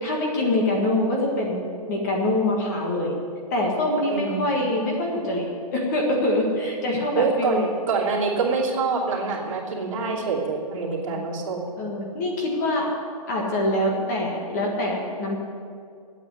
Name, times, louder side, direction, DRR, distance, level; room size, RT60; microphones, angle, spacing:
voice 1, 0.0-1.6 1.9-3.2 3.5-7.6 10.0-10.2 10.7-11.2 11.8-12.9 13.3-15.4, left 1 dB, 25° left, -1 dB, 1.7 m, -25 dB
voice 2, 4.1-4.5 7.2-11.7, right 4 dB, 55° right, -4 dB, 2.9 m, -25 dB
9.2 x 8.8 x 9.6 m, 2.3 s
hypercardioid pair, 175°, 20 cm